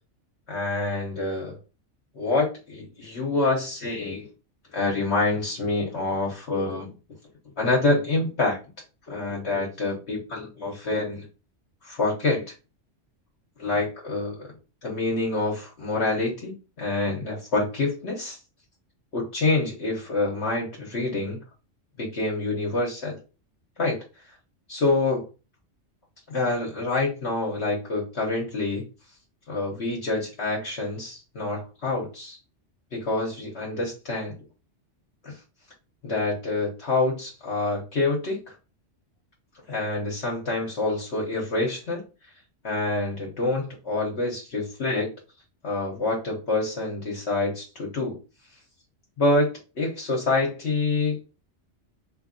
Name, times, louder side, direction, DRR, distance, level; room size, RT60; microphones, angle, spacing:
voice 1, 0.5-1.6 2.1-4.3 4.7-6.9 7.6-8.6 9.1-11.3 11.8-12.5 13.6-14.4 14.8-18.4 19.1-21.4 22.0-23.2 23.8-24.0 24.7-25.3 26.3-28.9 29.5-32.4 32.9-34.3 35.2-35.4 36.0-38.5 39.7-42.0 42.6-45.1 45.6-48.2 49.2-49.5 49.7-51.2, left 2 dB, 65° left, -2 dB, 1.2 m, -26 dB
3.8 x 2.8 x 2.6 m, 0.31 s
omnidirectional pair, 1.2 m